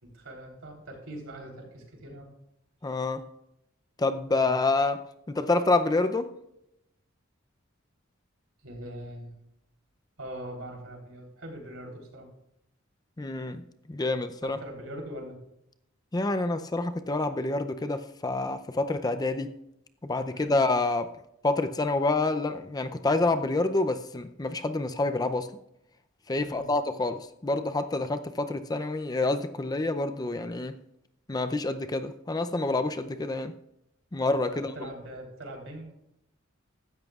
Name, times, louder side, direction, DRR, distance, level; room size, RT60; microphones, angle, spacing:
voice 1, 0.0-2.3 4.3-4.5 8.6-9.3 10.2-12.3 14.4-15.4 20.3-20.5 26.4-26.7 34.5-35.9, right 1 dB, 75° right, 1 dB, 3.6 m, -42 dB
voice 2, 2.8-3.2 4.0-5.0 5.3-6.3 13.2-14.6 16.1-19.5 20.0-21.1 21.4-25.5 26.3-30.8 31.3-33.5 34.1-34.9, left 2 dB, 20° left, 9 dB, 0.5 m, -27 dB
16.0 x 13.0 x 2.4 m, 0.82 s
head